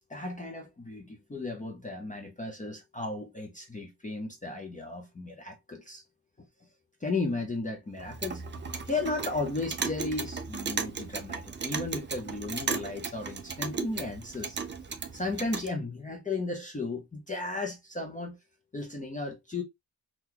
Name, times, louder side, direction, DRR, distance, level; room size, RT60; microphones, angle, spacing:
voice 1, 0.1-6.0 7.0-8.4 8.9-14.6 15.1-18.4 18.7-19.6, left 3 dB, 20° left, 0.6 m, -35 dB
Clock, 8.0-15.7, right 5 dB, 25° right, 0.4 m, -36 dB
3.7 x 2.3 x 2.8 m
wide cardioid pair, 175°, 43 cm